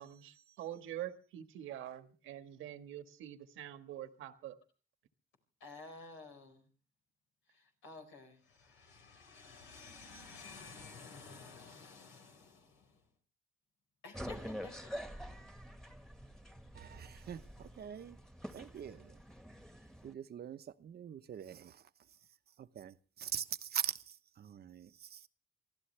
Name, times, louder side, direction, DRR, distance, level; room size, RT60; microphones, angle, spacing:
voice 1, 0.0-4.6, right 11 dB, 90° right, 1.6 m, -45 dB
voice 2, 5.6-6.7 7.5-13.0 14.0-14.8, left 4 dB, 85° left, 4.8 m, -53 dB
sound 1, 14.1-20.1, equal, ahead, 1.6 m, -47 dB
voice 3, 16.7-18.2 18.5-19.2 20.0-21.8 22.6-25.3, right 9 dB, 55° right, 0.9 m, -43 dB
24.5 x 15.5 x 3.3 m
cardioid pair, 90°, 20 cm